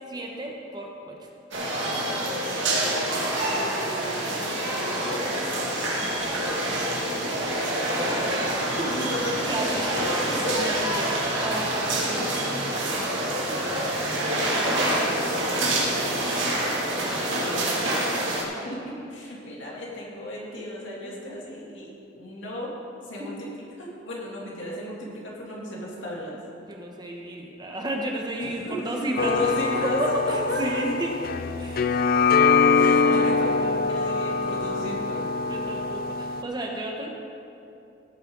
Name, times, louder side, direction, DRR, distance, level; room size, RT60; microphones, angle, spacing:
voice 1, 0.1-1.3 6.0-6.9 8.8-8.9 9.5-9.9 10.6-15.8 17.0-18.0 21.0-21.5 23.2-23.3 26.7-31.1 31.5-32.0 32.4-33.9 35.5-37.1, right 1 dB, 20° right, 0 dB, 1.1 m, -34 dB
sound 1, 1.5-18.4, right 1 dB, 75° right, 2.4 m, -26 dB
voice 2, 3.5-5.2 7.8-10.7 18.4-21.9 22.1-22.7 23.1-23.4 23.8-26.4 28.4-30.0 30.3-30.8 32.7-33.5 33.9-35.3, left 1 dB, 70° left, -4 dB, 2.9 m, -34 dB
sound 2, 29.2-36.4, left 5 dB, 50° left, 0.4 m, -23 dB
16.5 x 9.1 x 4.0 m, 2.8 s
head